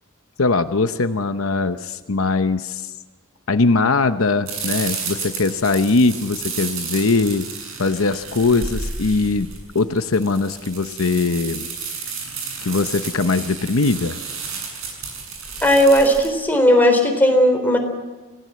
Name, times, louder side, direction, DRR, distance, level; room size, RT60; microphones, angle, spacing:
voice 1, 0.4-2.9 3.5-7.5 7.8-11.7 12.6-14.2, left 3 dB, 75° left, 9 dB, 0.9 m, -20 dB
sound 1, 4.5-16.3, right 5 dB, 70° right, 7.8 m, -32 dB
voice 2, 15.6-17.8, equal, 10° left, 3 dB, 3.9 m, -15 dB
28.0 x 18.0 x 7.7 m, 1.3 s
head